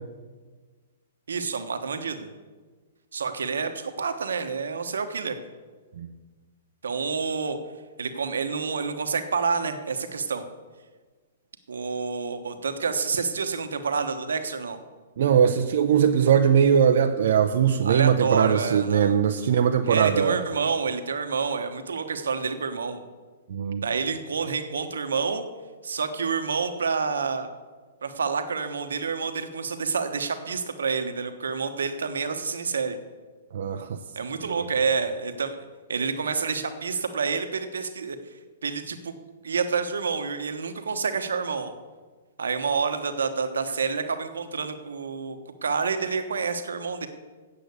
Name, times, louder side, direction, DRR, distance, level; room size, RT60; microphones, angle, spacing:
voice 1, 1.3-2.3 3.1-5.4 6.8-7.6 8.0-10.4 11.7-14.8 17.8-19.2 19.8-23.0 23.8-25.4 25.8-27.5 28.0-33.0 34.1-35.6 35.9-38.2 38.6-39.1 39.4-41.7 42.4-47.1, right 5 dB, 85° right, 8 dB, 1.1 m, -28 dB
voice 2, 15.2-20.4 23.5-23.8 33.5-34.0 34.5-34.7, right 8 dB, 65° right, 5 dB, 0.6 m, -21 dB
8.6 x 7.6 x 8.1 m, 1.4 s
hypercardioid pair, 135°, 0 cm